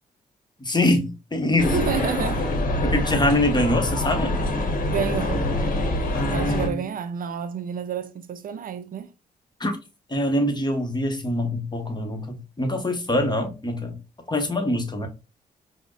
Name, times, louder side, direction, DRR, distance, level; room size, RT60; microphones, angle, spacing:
voice 1, 0.6-1.8 2.8-4.4 6.1-6.8 9.6-9.7 10.1-14.0 14.3-15.1, left 1 dB, 25° left, 1.0 m, -24 dB
sound 1, 1.6-6.7, left 1 dB, 55° left, 0.9 m, -25 dB
voice 2, 1.7-2.5 4.9-5.5 6.3-9.1, right 7 dB, 60° right, 0.4 m, -29 dB
5.0 x 2.1 x 2.3 m
cardioid pair, 60°, 17 cm